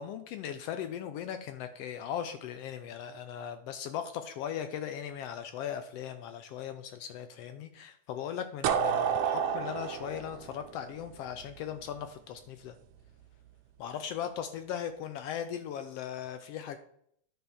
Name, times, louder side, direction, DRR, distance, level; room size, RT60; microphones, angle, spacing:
voice 1, 0.0-12.7 13.8-16.8, left 9 dB, 80° left, 8 dB, 1.4 m, -38 dB
sound 1, 8.6-11.5, right 7 dB, 75° right, 2.0 m, -30 dB
10.5 x 3.6 x 6.8 m, 0.68 s
omnidirectional pair, 3.4 m